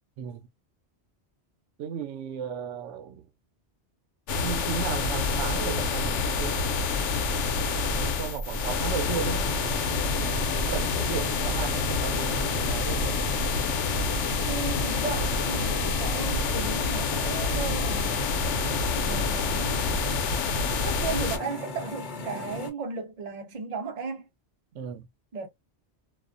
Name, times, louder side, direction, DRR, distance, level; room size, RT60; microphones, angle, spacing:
voice 1, 0.2-0.5 1.8-3.3 4.4-6.6 8.0-9.5 9.9-13.5 24.7-25.1, right 7 dB, 85° right, 0.9 m, -35 dB
sound 1, 4.3-21.4, left 4 dB, 90° left, 0.9 m, -27 dB
sound 2, 9.0-22.7, left 3 dB, 50° left, 0.8 m, -37 dB
voice 2, 14.4-18.3 19.0-19.8 20.8-24.3 25.3-25.5, right 5 dB, 45° right, 0.6 m, -35 dB
2.4 x 2.1 x 2.5 m
omnidirectional pair, 1.2 m